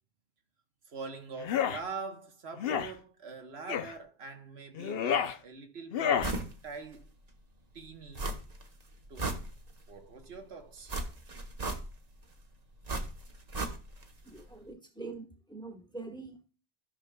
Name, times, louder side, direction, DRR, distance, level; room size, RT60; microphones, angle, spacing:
voice 1, 0.9-6.2 6.6-7.1 7.7-8.3 9.1-9.5 9.9-10.9, right 4 dB, 85° right, 1.4 m, -43 dB
sound 1, 1.4-1.8 2.6-2.9 3.7-3.9 4.7-5.4 5.9-6.3, left 8 dB, 70° left, 0.8 m, -30 dB
sound 2, 6.2-6.5 6.9-7.0 8.2-8.7 9.0-9.9 10.9-12.2 12.9-14.1 14.4-14.5, right 2 dB, 40° right, 1.1 m, -36 dB
voice 2, 14.2-16.5, right 3 dB, 5° left, 1.2 m, -44 dB
14.0 x 6.4 x 2.2 m
omnidirectional pair, 1.1 m